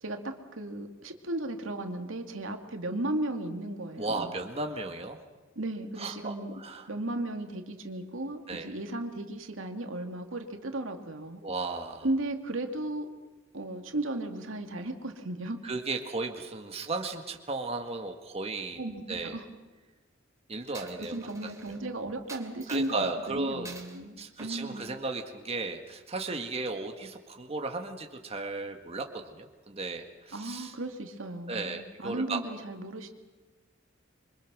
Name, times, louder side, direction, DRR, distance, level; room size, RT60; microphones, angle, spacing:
voice 1, 0.0-4.3 5.6-6.5 6.9-11.4 12.0-13.1 13.5-15.6 18.8-19.4 20.7-24.9 30.3-33.1, right 1 dB, 80° right, 5 dB, 2.4 m, -35 dB
voice 2, 4.0-5.2 6.0-6.9 8.5-8.7 11.4-12.1 15.6-18.8 19.1-19.4 20.5-21.9 22.7-23.7 24.2-30.7 31.5-32.4, right 3 dB, 30° right, 4 dB, 1.8 m, -35 dB
Coin (dropping), 20.7-21.8 22.3-23.1 23.6-24.0 24.4-25.5, right 4 dB, 15° right, 3.0 m, -48 dB
27.0 x 24.5 x 6.3 m, 1.3 s
head